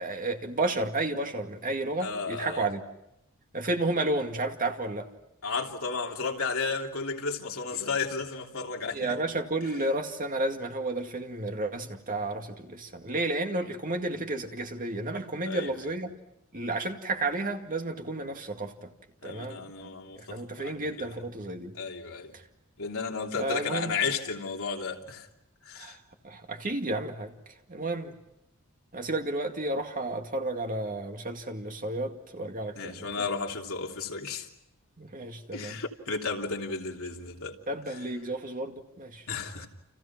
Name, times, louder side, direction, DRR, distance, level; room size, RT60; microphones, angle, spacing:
voice 1, 0.0-2.8 3.5-5.1 8.9-16.1 16.5-18.9 19.2-21.7 23.4-23.9 25.8-26.0 26.2-27.3 27.7-28.1 28.9-33.3 35.0-35.8 37.7-39.2, right 2 dB, 40° right, 2.2 m, -32 dB
voice 2, 2.0-2.6 5.4-9.2 9.6-9.7 11.8-11.9 15.4-15.7 19.2-21.1 21.7-22.3 22.8-25.3 25.6-26.0 32.7-34.5 35.5-37.6 39.3-39.7, left 4 dB, 65° left, 3.2 m, -33 dB
30.0 x 29.5 x 6.0 m
head